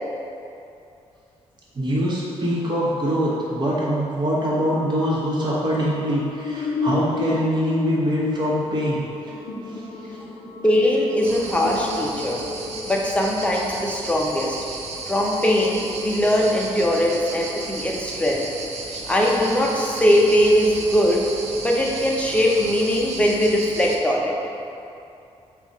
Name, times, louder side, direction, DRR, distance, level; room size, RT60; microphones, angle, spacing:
voice 1, 1.7-9.0 9.7-10.2, equal, 40° right, -6 dB, 1.0 m, -24 dB
sound 1, 4.4-13.7, left 3 dB, 75° left, 0.5 m, -32 dB
voice 2, 10.6-12.4 12.9-14.6 15.1-18.4 19.1-21.2 21.6-24.3, equal, 10° left, -2 dB, 0.6 m, -20 dB
sound 2, 11.2-24.0, right 3 dB, 75° right, 0.5 m, -34 dB
4.9 x 2.4 x 4.1 m, 2.7 s
cardioid pair, 110°, 12 cm